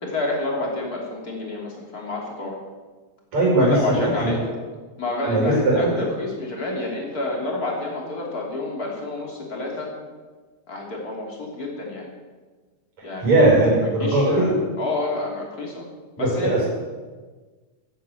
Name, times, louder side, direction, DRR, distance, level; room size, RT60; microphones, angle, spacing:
voice 1, 0.0-2.6 3.7-4.4 5.0-9.9 10.7-12.1 13.0-13.4 13.8-15.9 16.2-16.6, left 2 dB, 30° left, -1 dB, 3.5 m, -29 dB
voice 2, 3.3-4.3 5.3-5.9 13.2-14.5 16.2-16.7, right 2 dB, 65° right, -4 dB, 7.2 m, -19 dB
15.0 x 9.4 x 8.2 m, 1.4 s
omnidirectional pair, 3.4 m